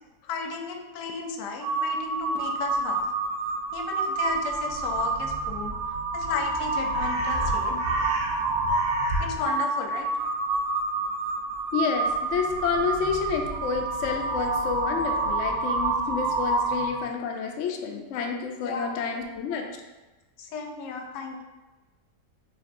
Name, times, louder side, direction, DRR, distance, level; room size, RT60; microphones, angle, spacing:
voice 1, 0.2-3.0 3.7-7.8 9.2-10.1 18.6-18.9 20.4-21.4, left 4 dB, 85° left, 3 dB, 1.3 m, -34 dB
Crow, 1.6-17.1, right 3 dB, 65° right, 1.2 m, -28 dB
voice 2, 11.7-19.7, left 6 dB, 70° left, 3 dB, 0.7 m, -29 dB
5.9 x 3.3 x 2.5 m, 1.1 s
omnidirectional pair, 1.8 m